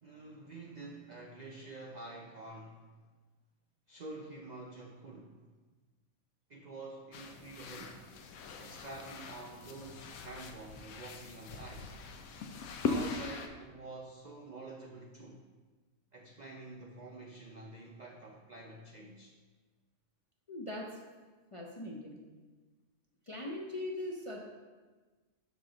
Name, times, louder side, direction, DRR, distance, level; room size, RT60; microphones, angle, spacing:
voice 1, 0.0-2.9 3.9-5.5 6.5-8.0 8.6-12.0 12.8-15.4 16.1-19.4, right 2 dB, 60° right, 1 dB, 0.4 m, -48 dB
sound 1, 7.1-13.5, left 4 dB, 80° left, 1.1 m, -40 dB
voice 2, 20.5-20.9 21.5-22.2 23.3-24.4, left 1 dB, 40° left, -2 dB, 0.4 m, -40 dB
6.7 x 6.2 x 3.8 m, 1.3 s
omnidirectional pair, 1.5 m